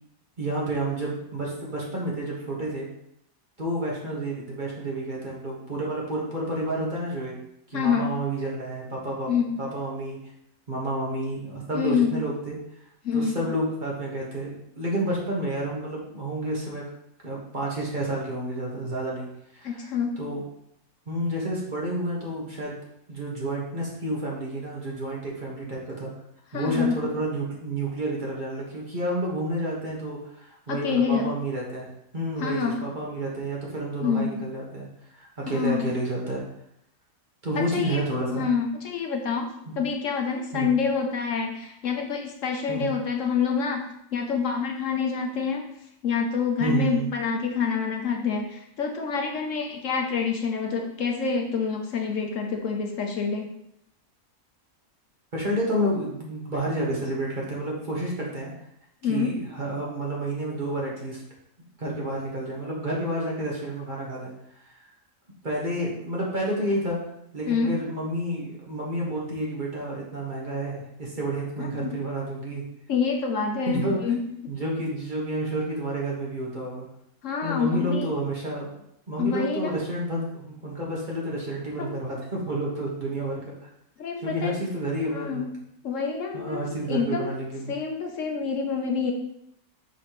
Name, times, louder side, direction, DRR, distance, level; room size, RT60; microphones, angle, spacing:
voice 1, 0.4-2.9 3.6-7.3 7.7-9.3 9.6-10.2 10.7-12.6 13.1-16.8 17.2-19.3 19.5-19.9 20.2-20.4 21.1-22.8 23.1-26.1 26.5-31.9 32.1-34.9 35.2-36.4 37.4-38.4 39.6-39.8 40.5-40.8 42.7-42.9 46.6-47.1 55.3-58.5 59.0-61.2 61.8-64.3 64.6-64.7 65.4-67.0 67.3-72.6 73.7-74.1 74.5-76.9 77.4-78.7 79.1-83.7 84.2-85.5 86.3-87.7, right 1 dB, 35° right, -4 dB, 1.7 m, -30 dB
voice 2, 7.7-8.1 9.3-9.5 11.7-12.1 13.0-13.4 19.6-20.2 26.5-27.0 30.7-31.2 32.4-32.8 34.0-34.4 35.4-35.8 37.5-38.0 38.3-39.5 39.8-43.8 44.1-45.6 46.0-53.5 59.0-59.3 67.5-67.7 71.6-71.9 72.9-74.2 77.2-78.1 79.2-79.8 81.8-82.0 84.0-84.6 85.1-85.5 85.8-87.3 87.7-89.1, left 6 dB, 65° left, 2 dB, 1.1 m, -27 dB
6.1 x 6.0 x 3.1 m, 0.77 s
omnidirectional pair, 1.5 m